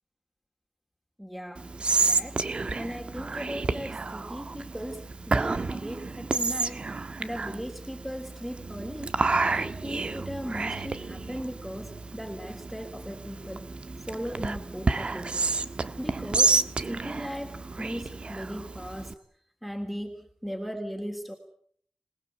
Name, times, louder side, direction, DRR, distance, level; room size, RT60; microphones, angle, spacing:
voice 1, 1.2-1.7 2.0-2.4 2.7-9.1 9.5-13.7 14.1-15.5 16.0-19.1 19.6-21.3, equal, 5° right, 4 dB, 3.3 m, -38 dB
Whispering, 1.6-19.1, right 3 dB, 55° right, 1.5 m, -30 dB
27.5 x 19.5 x 8.5 m, 0.62 s
wide cardioid pair, 100°, 2 cm